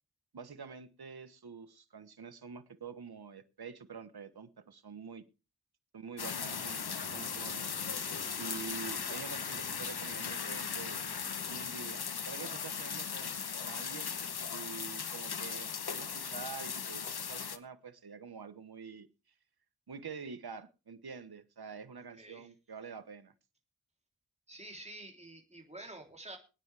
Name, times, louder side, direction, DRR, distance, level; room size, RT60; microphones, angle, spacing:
voice 1, 0.3-5.2 5.9-7.7 8.4-11.0 11.5-14.2 14.5-19.1 19.9-23.3, right 5 dB, 85° right, 11 dB, 1.3 m, -47 dB
sound 1, 6.2-17.6, left 6 dB, 90° left, 1.1 m, -38 dB
sound 2, 6.4-11.6, right 3 dB, 60° right, 3.5 m, -52 dB
voice 2, 22.1-22.5 24.5-26.4, right 2 dB, 15° right, 2 dB, 3.4 m, -48 dB
22.0 x 9.7 x 3.4 m, 0.32 s
wide cardioid pair, 60°, 37 cm